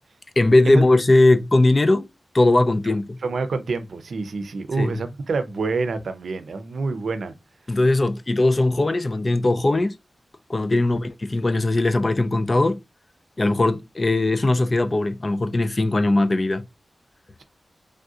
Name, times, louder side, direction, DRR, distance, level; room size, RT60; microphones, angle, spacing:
voice 1, 0.4-2.1 2.3-3.2 4.8-4.9 7.7-9.9 10.5-12.8 13.4-16.6, left 2 dB, 40° left, 0.4 m, -19 dB
voice 2, 2.9-7.3 10.8-10.9, right 3 dB, 90° right, 0.5 m, -27 dB
3.4 x 2.6 x 2.4 m
wide cardioid pair, 80°, 0 cm